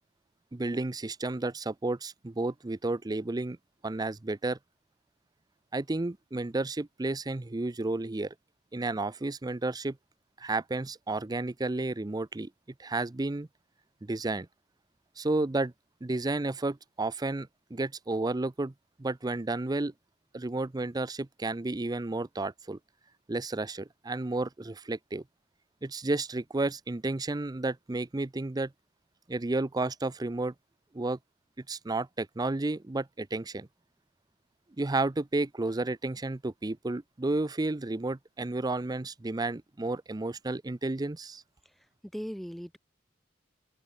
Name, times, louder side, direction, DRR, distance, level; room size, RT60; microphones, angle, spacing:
voice 1, 0.5-3.6 3.8-4.6 5.7-8.3 8.7-10.0 10.4-12.5 12.8-13.5 14.0-14.5 15.2-15.7 16.0-18.7 19.0-19.9 20.3-22.8 23.3-25.2 25.8-28.7 29.3-30.5 30.9-31.2 31.7-33.7 34.8-41.4, right 2 dB, 20° right, 0.5 m, -32 dB
voice 2, 41.7-42.8, equal, ahead, 1.9 m, -40 dB
open air
head